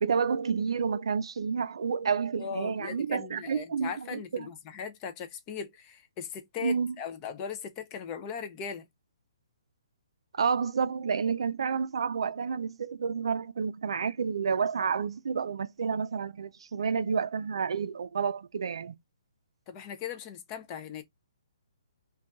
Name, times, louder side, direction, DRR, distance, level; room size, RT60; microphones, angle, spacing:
voice 1, 0.0-4.5 6.6-7.0 10.3-18.9, right 6 dB, 70° right, 0.4 m, -30 dB
voice 2, 2.4-8.9 19.7-21.0, left 7 dB, 20° left, 0.3 m, -39 dB
2.3 x 2.2 x 3.8 m
hypercardioid pair, 165°, 3 cm